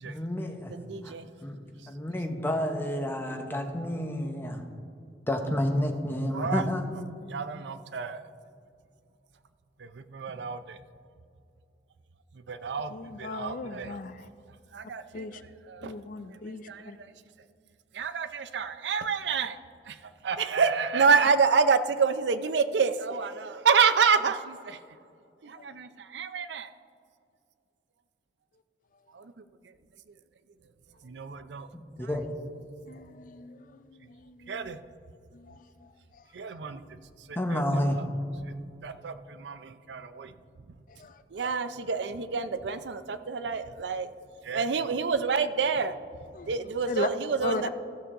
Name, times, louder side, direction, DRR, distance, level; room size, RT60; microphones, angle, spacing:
voice 1, 0.1-0.7 1.0-1.1 1.4-1.6 1.9-4.6 5.3-6.8 10.3-10.4 31.7-32.2 37.4-38.0, left 1 dB, 15° left, 4 dB, 0.8 m, -30 dB
voice 2, 0.7-1.3 6.3-6.6 7.3-8.2 9.8-10.8 12.5-14.0 14.7-15.3 15.7-15.9 16.5-17.1 17.9-19.6 19.9-20.0 20.2-24.8 25.4-26.7 29.1-29.4 31.0-31.7 32.0-32.2 34.5-34.8 36.3-36.9 37.3-37.6 38.5-38.6 38.8-40.3 41.3-44.1 44.4-46.0 46.4-47.7, right 5 dB, 80° right, 11 dB, 0.5 m, -28 dB
voice 3, 12.9-14.3 15.1-15.4 15.8-17.0 25.6-25.7 32.9-34.7 35.3-35.9 46.3-46.5 46.9-47.1 47.4-47.7, left 3 dB, 50° left, 11 dB, 0.4 m, -37 dB
15.0 x 6.8 x 3.7 m, 2.5 s
head